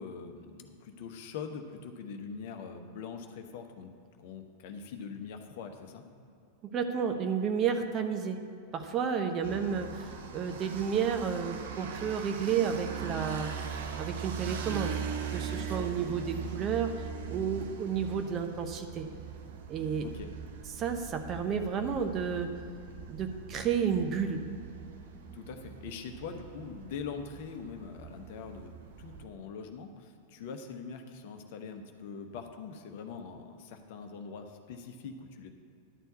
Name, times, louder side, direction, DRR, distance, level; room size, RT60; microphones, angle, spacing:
voice 1, 0.0-3.9 4.2-6.0 15.5-15.9 20.0-20.3 25.3-28.7 29.0-35.5, left 5 dB, 50° left, 6 dB, 0.9 m, -43 dB
voice 2, 6.6-8.4 8.7-13.5 14.0-14.9 15.3-16.9 17.3-19.1 19.7-20.1 20.7-22.5 23.1-24.4, right 7 dB, 30° right, 6 dB, 0.9 m, -31 dB
sound 1, 9.4-29.2, right 7 dB, 55° right, 0.9 m, -41 dB
11.0 x 4.5 x 8.1 m, 2.5 s
figure-of-eight pair, 90°, 0 cm